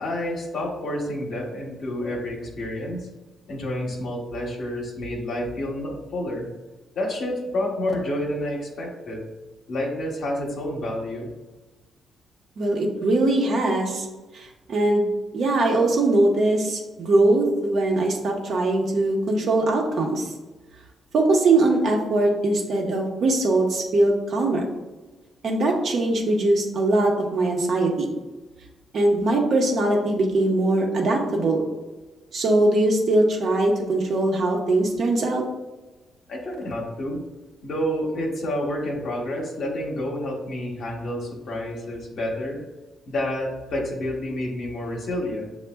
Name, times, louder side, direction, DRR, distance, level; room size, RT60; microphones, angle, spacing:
voice 1, 0.0-3.1 3.5-6.5 6.9-9.3 9.7-11.3 36.3-37.2 37.6-42.6 43.1-45.5, left 1 dB, 70° left, -3 dB, 0.8 m, -29 dB
voice 2, 12.6-14.1 14.3-15.1 15.3-20.3 21.1-24.7 25.4-28.1 28.9-31.6 32.3-35.4, right 2 dB, 65° right, 0 dB, 0.9 m, -21 dB
6.9 x 2.3 x 2.3 m, 1.2 s
supercardioid pair, 50°, 0 cm